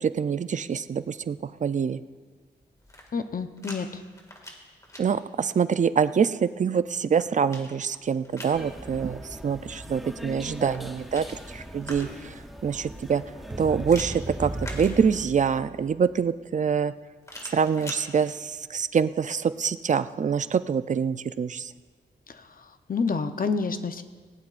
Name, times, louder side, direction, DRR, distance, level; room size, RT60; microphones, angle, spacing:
voice 1, 0.0-2.0 5.0-13.2 13.6-16.9 17.4-21.7, right 6 dB, 40° right, 13 dB, 0.4 m, -25 dB
sound 1, 2.8-3.8 4.1-5.0 6.7-8.6 10.6-12.4 13.8-15.4 17.2-18.0, left 1 dB, 15° left, 2.0 m, -43 dB
voice 2, 3.1-4.0 22.3-24.0, left 4 dB, 50° left, 8 dB, 0.7 m, -29 dB
sound 2, 8.5-15.3, equal, ahead, 0.7 m, -41 dB
sound 3, 13.5-16.0, right 2 dB, 25° right, 1.0 m, -35 dB
18.5 x 16.5 x 2.5 m, 1.5 s
wide cardioid pair, 140°, 19 cm